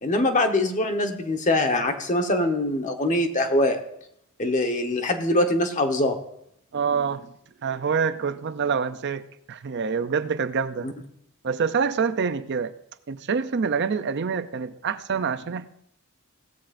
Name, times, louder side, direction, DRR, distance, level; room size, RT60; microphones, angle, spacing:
voice 1, 0.0-3.8 4.4-6.2 10.8-10.9, left 1 dB, 35° left, 5 dB, 1.2 m, -23 dB
voice 2, 6.7-7.3 7.6-10.9 11.4-12.7 13.1-15.7, right 5 dB, 50° right, 12 dB, 0.5 m, -26 dB
17.0 x 13.5 x 2.6 m, 0.74 s
head